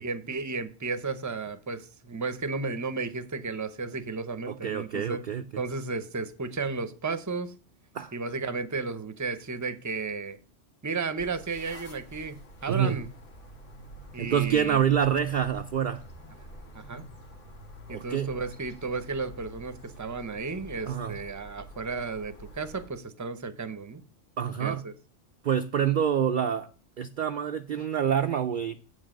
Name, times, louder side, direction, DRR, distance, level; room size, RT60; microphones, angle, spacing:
voice 1, 0.0-5.2 5.6-7.5 8.1-10.4 10.8-13.1 14.1-14.8 16.7-17.1 17.9-24.0 24.6-24.9, right 4 dB, 20° right, 12 dB, 0.6 m, -33 dB
voice 2, 4.5-5.6 7.9-8.1 12.7-13.0 14.2-16.0 17.9-18.3 20.9-21.2 24.4-24.9 25.4-26.7 27.0-29.0, right 8 dB, 55° right, 8 dB, 0.6 m, -27 dB
sound 1, 11.2-22.9, equal, 80° left, 2.0 m, -48 dB
8.0 x 5.6 x 6.3 m, 0.38 s
omnidirectional pair, 1.2 m